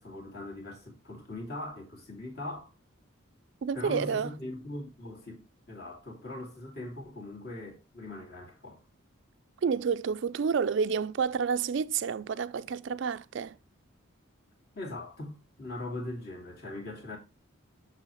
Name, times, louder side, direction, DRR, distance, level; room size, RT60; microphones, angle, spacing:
voice 1, 0.0-2.7 3.7-5.4 5.7-8.8 14.7-17.2, left 1 dB, 50° left, 2.6 m, -40 dB
voice 2, 3.6-4.3 9.6-13.6, right 6 dB, 55° right, 0.3 m, -29 dB
7.5 x 6.3 x 3.0 m
head